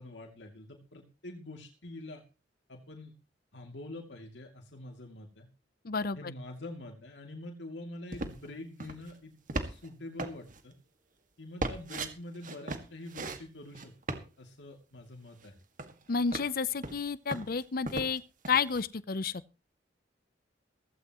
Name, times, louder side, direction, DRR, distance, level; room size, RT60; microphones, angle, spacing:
voice 1, 0.0-2.2 2.7-3.1 3.5-5.5 6.1-10.7 11.4-15.5, left 2 dB, 85° left, 2.7 m, -46 dB
voice 2, 5.8-6.2 16.1-18.2 18.5-19.4, left 5 dB, 55° left, 0.7 m, -30 dB
sound 1, 8.1-8.5 8.8-9.1 9.5-9.9 10.2-10.6 11.6-12.1 12.4-13.4 13.7-14.2 15.4-15.5 15.8-16.5 16.8-18.2 18.4-18.8, right 2 dB, 45° right, 1.9 m, -37 dB
16.5 x 15.5 x 3.0 m
head